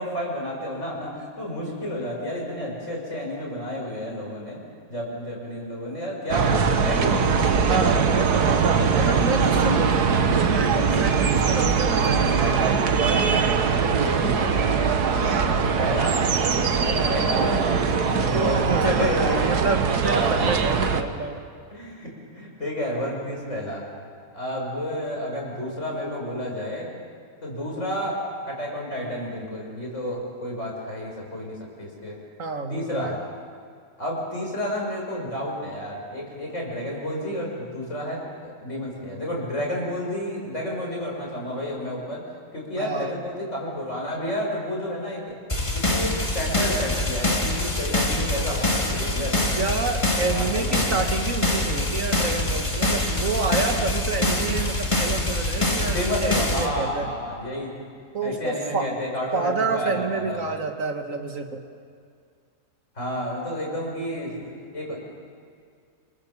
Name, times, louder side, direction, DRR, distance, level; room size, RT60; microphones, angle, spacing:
voice 1, 0.0-4.6 4.9-7.3 14.0-16.2 16.8-19.6 20.2-20.4 21.7-23.8 24.3-26.9 27.4-28.2 28.5-32.2 32.7-33.2 34.0-42.3 42.5-45.4 45.7-49.8 50.3-50.9 55.9-57.8 58.2-60.5 63.0-65.0, equal, 50° left, -2 dB, 6.5 m, -31 dB
sound 1, 6.3-21.0, right 5 dB, 80° right, 1.8 m, -21 dB
voice 2, 7.7-12.8 18.3-21.4 32.4-33.2 42.8-43.2 49.6-57.1 58.1-58.9 59.3-61.6, right 4 dB, 55° right, 5 dB, 1.9 m, -28 dB
sound 2, 45.5-56.7, left 2 dB, 20° left, 2.3 m, -25 dB
28.0 x 24.0 x 7.2 m, 2.2 s
omnidirectional pair, 1.7 m